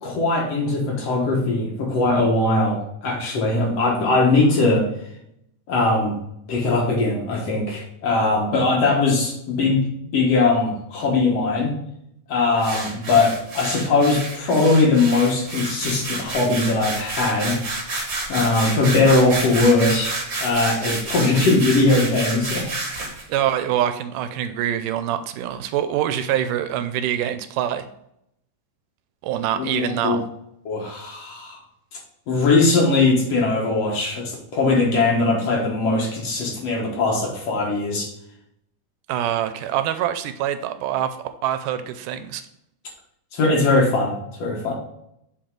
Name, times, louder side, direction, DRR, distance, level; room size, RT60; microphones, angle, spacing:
voice 1, 0.0-4.9 5.7-6.2 6.5-9.9 10.1-11.8 12.3-17.6 18.3-23.1 29.6-30.2 30.7-31.6 32.3-38.1 43.3-44.7, left 3 dB, 55° left, -1 dB, 2.2 m, -20 dB
sound 1, 12.6-23.2, right 2 dB, 40° right, 1.4 m, -29 dB
voice 2, 23.3-27.9 29.2-30.2 39.1-41.2 41.4-42.4, right 11 dB, 80° right, 10 dB, 2.1 m, -25 dB
7.8 x 4.2 x 3.8 m, 0.76 s
omnidirectional pair, 3.7 m